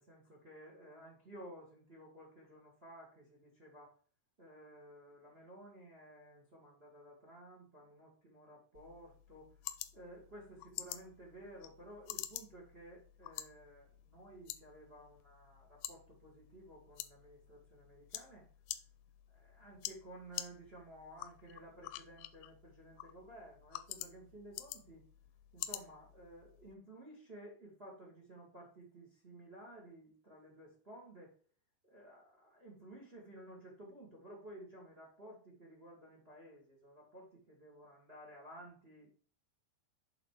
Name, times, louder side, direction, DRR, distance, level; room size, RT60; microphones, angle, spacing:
voice 1, 0.0-4.0 4.4-9.5 9.9-18.5 19.3-25.0 25.5-31.3 31.8-39.1, right 1 dB, 35° right, -1 dB, 1.0 m, -55 dB
sound 1, 8.7-26.7, left 14 dB, 85° left, 2.4 m, -49 dB
7.8 x 4.1 x 4.7 m, 0.42 s
omnidirectional pair, 4.4 m